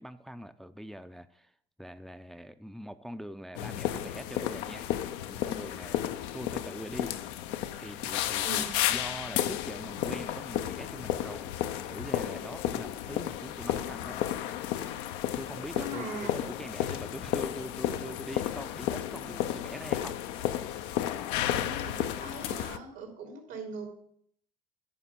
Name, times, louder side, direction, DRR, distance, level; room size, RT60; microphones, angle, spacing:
voice 1, 0.0-4.9 5.3-6.0 6.3-7.2 7.8-14.2 15.4-20.2, equal, ahead, 9 dB, 0.5 m, -43 dB
sound 1, 3.6-22.8, left 12 dB, 80° left, 0.7 m, -33 dB
voice 2, 15.7-16.3 21.5-23.9, right 2 dB, 80° right, 1 dB, 3.4 m, -40 dB
10.0 x 5.1 x 7.5 m, 0.67 s
supercardioid pair, 70°, 18 cm